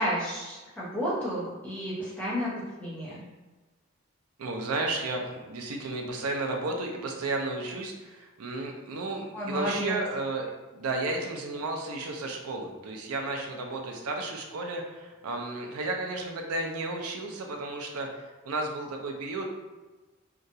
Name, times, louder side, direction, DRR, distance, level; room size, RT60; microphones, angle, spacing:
voice 1, 0.0-3.2 9.3-9.9, equal, 5° left, -9 dB, 0.8 m, -31 dB
voice 2, 4.4-19.5, right 2 dB, 90° right, 2 dB, 0.5 m, -33 dB
2.9 x 2.3 x 2.6 m, 1.2 s
head